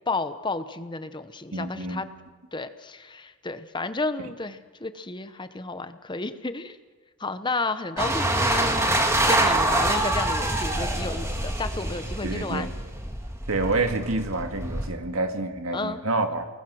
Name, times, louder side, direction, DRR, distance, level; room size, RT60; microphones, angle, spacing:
voice 1, 0.1-2.0 2.5-6.8 7.2-9.0 9.3-12.7 15.7-16.0, left 3 dB, 20° left, 11 dB, 0.8 m, -32 dB
voice 2, 1.5-2.1 12.2-12.7 13.5-16.5, right 2 dB, 70° right, 6 dB, 1.9 m, -28 dB
sound 1, 8.0-14.9, right 1 dB, 10° right, 1.8 m, -25 dB
29.5 x 20.0 x 6.3 m, 1.3 s
head